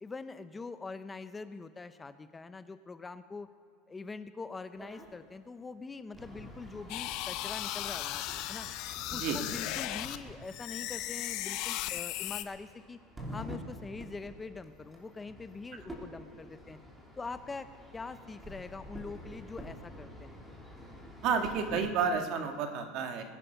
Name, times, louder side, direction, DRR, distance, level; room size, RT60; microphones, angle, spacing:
voice 1, 0.0-3.5 3.9-8.7 9.1-13.0 13.3-16.8 17.2-20.3, left 4 dB, 15° left, 12 dB, 0.5 m, -43 dB
sound 1, 4.8-5.1 6.1-21.8, equal, 15° right, 3.1 m, -48 dB
sound 2, 6.9-10.2 10.5-12.4, left 14 dB, 60° left, 0.7 m, -36 dB
voice 2, 21.2-23.2, right 6 dB, 55° right, 5 dB, 1.8 m, -31 dB
20.5 x 9.6 x 5.6 m, 2.3 s
supercardioid pair, 125°, 0 cm